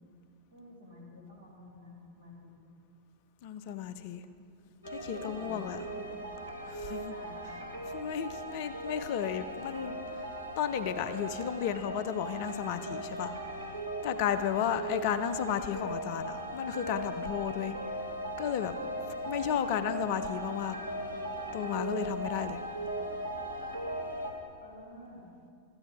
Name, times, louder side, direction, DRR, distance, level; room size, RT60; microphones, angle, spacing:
voice 1, 0.5-2.5 5.0-6.1 7.1-7.4 14.3-14.5 24.6-25.2, left 1 dB, 80° right, -3 dB, 2.6 m, -50 dB
voice 2, 3.4-4.3 4.9-5.9 6.7-7.1 7.8-10.2 10.6-13.3 14.0-17.7 18.4-18.7 19.3-20.8 21.5-22.6, left 9 dB, 50° left, 12 dB, 0.5 m, -33 dB
sound 1, 4.8-24.3, right 1 dB, 85° left, 1.2 m, -38 dB
13.0 x 9.7 x 3.7 m, 2.4 s
figure-of-eight pair, 90°, 0 cm